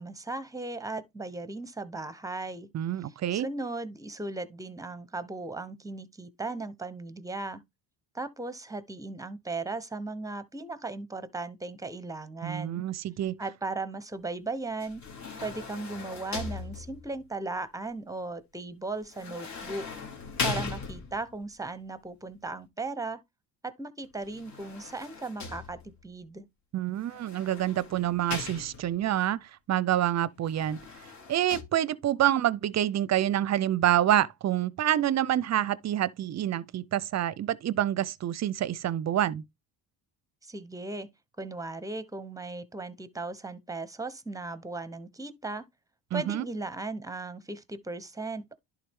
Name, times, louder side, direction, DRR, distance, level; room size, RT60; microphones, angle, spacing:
voice 1, 0.0-2.7 3.3-7.6 8.1-12.9 13.4-15.0 15.4-19.9 20.4-23.2 23.6-26.5 40.4-41.1 41.4-45.6 46.1-48.6, right 3 dB, 10° right, 0.9 m, -37 dB
voice 2, 2.7-3.5 12.4-13.4 26.7-30.8 31.3-39.4 46.1-46.4, right 12 dB, 40° right, 0.6 m, -27 dB
sound 1, 14.8-17.2 19.1-21.4 24.2-26.1 27.1-29.1 30.4-31.6, left 4 dB, 45° left, 2.5 m, -39 dB
11.0 x 3.7 x 3.6 m
supercardioid pair, 80°, 42 cm